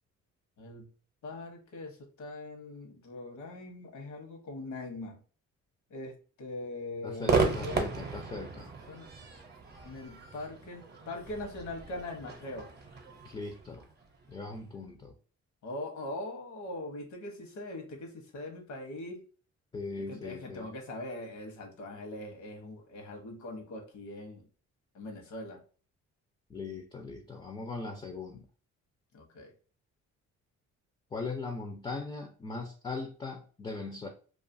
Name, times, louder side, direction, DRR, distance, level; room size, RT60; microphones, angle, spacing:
voice 1, 0.6-0.9 1.2-5.2 5.9-7.8 8.9-9.1 9.8-12.7 15.6-19.2 20.0-24.5 24.9-25.6 29.1-29.5, left 2 dB, 70° left, 0.9 m, -41 dB
voice 2, 7.0-8.7 13.2-13.9 14.3-15.1 19.7-20.7 26.5-28.5 31.1-34.1, left 3 dB, 15° left, 0.4 m, -39 dB
Crowd / Fireworks, 7.2-14.6, right 4 dB, 35° right, 0.6 m, -34 dB
2.5 x 2.3 x 2.5 m
cardioid pair, 90°, 30 cm